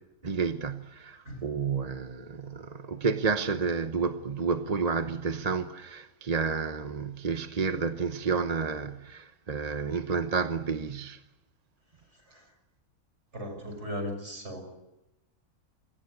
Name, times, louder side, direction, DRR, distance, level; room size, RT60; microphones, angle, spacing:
voice 1, 0.2-11.2, right 5 dB, 30° right, 0.9 m, -30 dB
voice 2, 13.3-14.6, equal, 50° right, 6.7 m, -37 dB
26.5 x 18.5 x 10.0 m
omnidirectional pair, 1.5 m